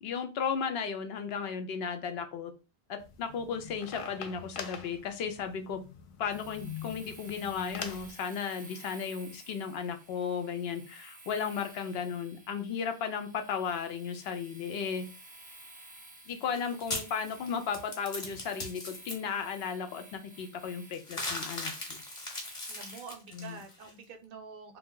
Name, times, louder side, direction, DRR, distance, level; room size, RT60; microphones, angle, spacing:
voice 1, 0.0-2.5 2.9-5.8 6.2-15.1 16.3-22.0 23.3-23.6, left 6 dB, 80° left, 7 dB, 0.8 m, -35 dB
sound 1, 3.0-8.1, left 6 dB, 55° left, 0.4 m, -44 dB
Domestic sounds home sounds, 6.3-23.1, right 2 dB, 10° right, 0.4 m, -53 dB
sound 2, 16.3-19.1 20.9-23.9, left 2 dB, 40° left, 0.9 m, -39 dB
voice 2, 22.7-24.8, right 5 dB, 65° right, 6 dB, 0.7 m, -47 dB
2.6 x 2.2 x 3.6 m, 0.31 s
omnidirectional pair, 1.0 m